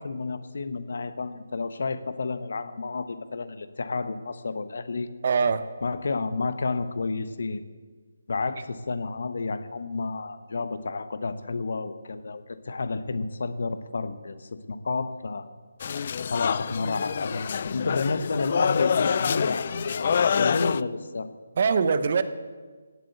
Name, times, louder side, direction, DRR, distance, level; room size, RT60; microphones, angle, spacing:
voice 1, 0.0-5.1 5.8-7.7 8.3-15.5 16.3-21.3, left 3 dB, 60° left, 12 dB, 1.1 m, -30 dB
voice 2, 5.2-5.7 21.6-22.2, right 5 dB, 45° right, 12 dB, 1.0 m, -22 dB
sound 1, 15.8-20.8, left 7 dB, 45° left, 0.4 m, -26 dB
17.0 x 7.9 x 8.2 m, 1.5 s
figure-of-eight pair, 155°, 0 cm